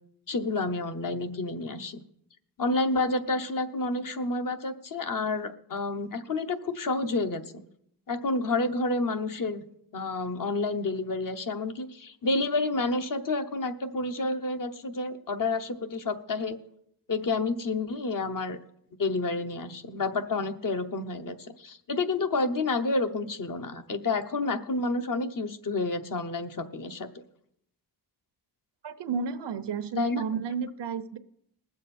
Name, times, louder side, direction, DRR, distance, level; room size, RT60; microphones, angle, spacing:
voice 1, 0.3-2.0 2.6-7.6 8.1-9.6 9.9-16.6 17.1-18.6 19.0-27.1 30.0-30.2, left 3 dB, 55° left, 7 dB, 1.0 m, -29 dB
voice 2, 28.8-31.2, right 6 dB, 90° right, 12 dB, 0.8 m, -32 dB
20.0 x 7.5 x 4.2 m, 0.73 s
wide cardioid pair, 145°, 41 cm